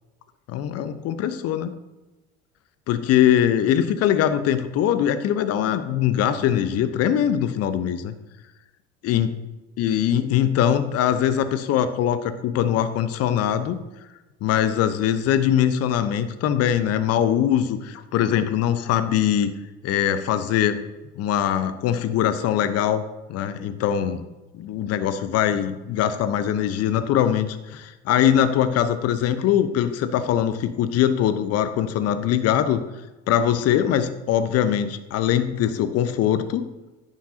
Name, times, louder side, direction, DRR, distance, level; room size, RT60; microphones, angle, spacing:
voice 1, 0.5-1.7 2.9-8.1 9.0-9.3 9.8-13.8 14.4-19.5 19.8-20.8 21.1-23.0 23.3-24.2 24.5-32.8 33.3-36.7, left 10 dB, 50° left, 11 dB, 0.9 m, -22 dB
10.5 x 9.4 x 2.8 m, 1.1 s
figure-of-eight pair, 65°, 33 cm